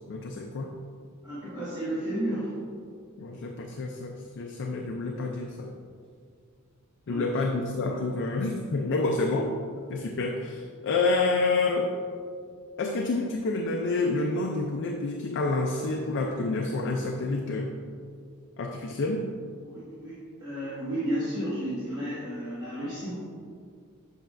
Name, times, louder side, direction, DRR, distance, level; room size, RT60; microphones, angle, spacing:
voice 1, 0.1-0.7 3.2-5.7 7.1-9.5 9.9-11.9 12.8-17.7 18.6-19.3, left 3 dB, 55° left, 2 dB, 0.4 m, -28 dB
voice 2, 1.2-2.5 7.1-7.3 19.6-23.2, right 1 dB, 20° right, -12 dB, 1.6 m, -32 dB
7.8 x 5.6 x 2.5 m, 2.2 s
head